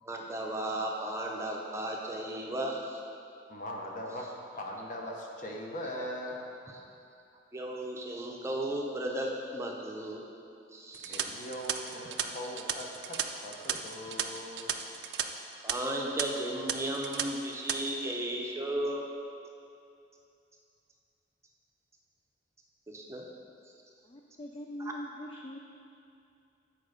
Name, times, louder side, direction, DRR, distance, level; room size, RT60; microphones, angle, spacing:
voice 1, 0.0-3.0 6.7-6.8 7.5-10.2 10.7-11.2 15.6-19.1 22.9-23.3, right 1 dB, 15° right, -1 dB, 0.6 m, -35 dB
voice 2, 3.5-6.5 11.1-13.2 13.4-14.8, equal, 45° left, 0 dB, 0.9 m, -40 dB
sound 1, 10.9-15.2 15.5-15.7 16.2-16.3 16.7-17.2 17.5-17.8, right 9 dB, 65° right, 0.4 m, -34 dB
voice 3, 24.0-25.6, equal, 30° left, 2 dB, 0.3 m, -42 dB
8.6 x 4.4 x 5.1 m, 2.5 s
head